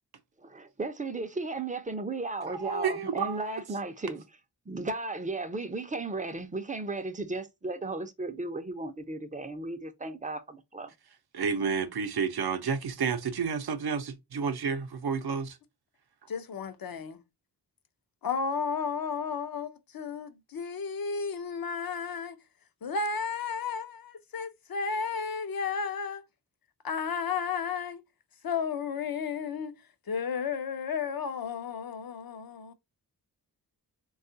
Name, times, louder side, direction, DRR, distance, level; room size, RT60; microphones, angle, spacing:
voice 1, 0.5-4.2 4.7-10.9, right 3 dB, 20° right, 0.4 m, -35 dB
voice 2, 2.5-3.6 11.3-15.6, right 6 dB, 70° right, 0.6 m, -30 dB
voice 3, 16.3-17.2 18.2-22.4 22.8-26.2 26.8-28.0 28.4-29.7 30.1-32.7, left 5 dB, 60° left, 0.6 m, -33 dB
3.5 x 2.3 x 2.5 m
wide cardioid pair, 90°, 40 cm